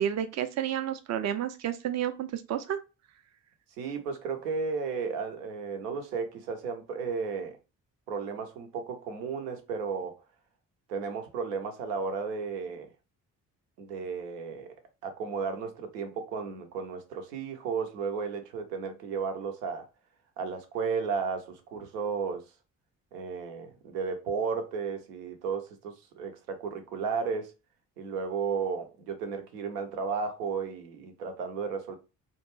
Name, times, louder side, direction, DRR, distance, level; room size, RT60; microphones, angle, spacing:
voice 1, 0.0-2.8, right 10 dB, 35° right, 0.5 m, -30 dB
voice 2, 3.8-7.6 8.1-10.1 10.9-12.9 13.8-14.7 15.0-19.8 20.4-22.4 23.1-27.5 28.0-32.0, right 5 dB, 75° right, 0.7 m, -34 dB
2.5 x 2.2 x 3.0 m
figure-of-eight pair, 40°, 48 cm